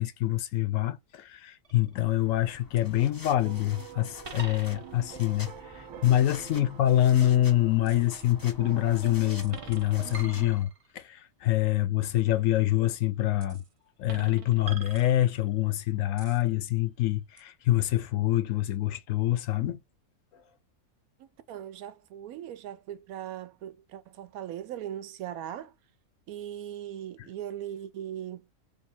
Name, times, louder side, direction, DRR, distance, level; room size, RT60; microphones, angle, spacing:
voice 1, 0.0-13.6 14.0-19.8, left 14 dB, 70° left, 0.9 m, -26 dB
sound 1, 1.6-2.1 2.8-2.9 4.2-5.1 7.8-8.3 9.4-11.0 13.4-13.7 14.1-15.6 16.2-16.5 17.4-17.5, right 5 dB, 45° right, 0.4 m, -44 dB
sound 2, 2.0-10.6, left 3 dB, 30° left, 0.4 m, -48 dB
sound 3, 3.4-10.5, right 11 dB, 70° right, 0.8 m, -47 dB
voice 2, 21.2-25.7 26.3-28.5, right 11 dB, 90° right, 1.1 m, -39 dB
3.3 x 2.8 x 4.2 m
omnidirectional pair, 1.5 m